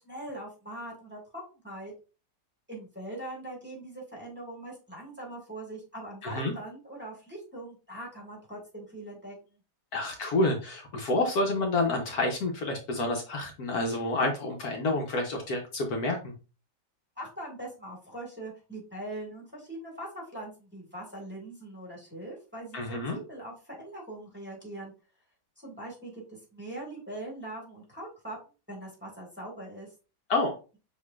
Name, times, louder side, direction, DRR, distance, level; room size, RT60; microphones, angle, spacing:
voice 1, 0.0-1.9 2.7-9.6 17.2-24.9 25.6-28.4 28.7-29.9, right 1 dB, 5° right, -3 dB, 1.6 m, -42 dB
voice 2, 6.2-6.5 9.9-16.3 22.7-23.2 30.3-30.5, left 2 dB, 65° left, 2 dB, 1.3 m, -28 dB
6.3 x 3.1 x 2.4 m, 0.33 s
omnidirectional pair, 1.8 m